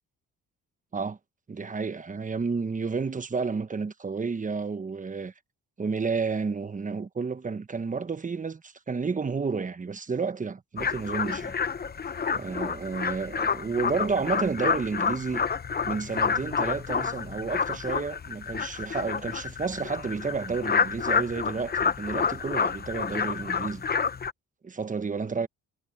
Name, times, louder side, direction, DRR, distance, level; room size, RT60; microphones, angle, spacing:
voice 1, 1.5-5.3 5.8-11.5 12.3-15.4 15.8-23.8 24.6-25.5, right 5 dB, 25° right, 1.2 m, -31 dB
sound 1, 10.8-24.3, left 6 dB, 30° left, 0.9 m, -29 dB
cardioid pair, 90°, 30 cm